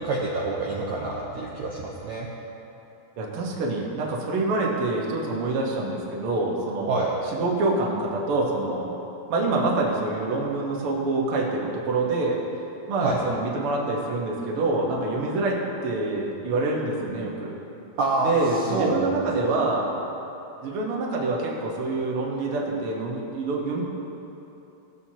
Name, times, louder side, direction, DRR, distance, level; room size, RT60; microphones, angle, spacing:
voice 1, 0.0-2.3 6.9-7.1 13.0-13.2 18.0-18.3 18.6-19.6, right 3 dB, 70° right, -4 dB, 1.9 m, -27 dB
voice 2, 3.2-8.9 9.3-12.4 12.9-17.6 18.2-19.9 20.6-23.8, right 2 dB, 55° right, -3 dB, 1.7 m, -26 dB
17.0 x 8.0 x 2.9 m, 2.9 s
omnidirectional pair, 4.1 m